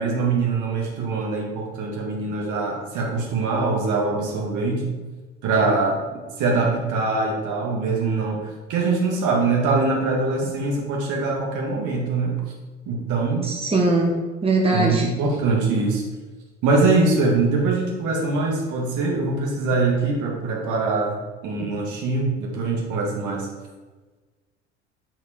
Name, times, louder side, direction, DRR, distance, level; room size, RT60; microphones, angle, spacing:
voice 1, 0.0-5.0 5.4-6.0 6.4-12.4 12.9-13.5 14.7-16.0 16.6-23.5, right 3 dB, 55° right, -1 dB, 2.1 m, -23 dB
voice 2, 13.4-14.1 14.4-15.0, right 2 dB, 15° right, -1 dB, 1.5 m, -20 dB
8.6 x 4.8 x 4.3 m, 1.3 s
hypercardioid pair, 65°, 36 cm